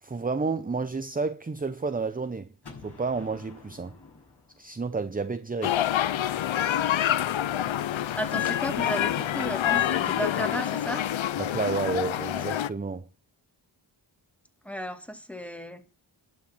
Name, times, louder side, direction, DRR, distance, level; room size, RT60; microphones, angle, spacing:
voice 1, 0.0-2.5 2.8-4.0 4.6-5.8 11.4-13.1, right 4 dB, 20° right, 0.6 m, -30 dB
Gunshot gunfire, 2.6-5.5 8.9-12.7, left 3 dB, 55° left, 6.5 m, -50 dB
sound 1, 5.6-12.7, left 11 dB, 70° left, 0.6 m, -27 dB
voice 2, 8.2-11.1 14.6-15.8, equal, 5° left, 1.9 m, -34 dB
11.5 x 6.6 x 7.5 m
wide cardioid pair, 55°, 48 cm